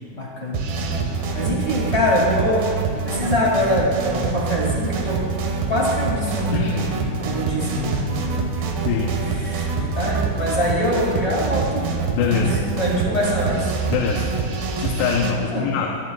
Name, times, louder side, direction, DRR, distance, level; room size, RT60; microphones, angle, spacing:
voice 1, 0.1-0.7 1.3-2.7 3.0-5.3 5.7-8.9 9.3-11.9 12.2-13.7 15.4-15.7, equal, 20° left, -4 dB, 2.0 m, -24 dB
sound 1, 0.5-15.3, right 4 dB, 80° right, 3.6 m, -25 dB
voice 2, 8.9-9.2 12.1-12.5 13.9-14.3 14.8-16.0, left 7 dB, 85° left, 0 dB, 3.1 m, -23 dB
24.0 x 13.5 x 2.4 m, 2.3 s
omnidirectional pair, 4.8 m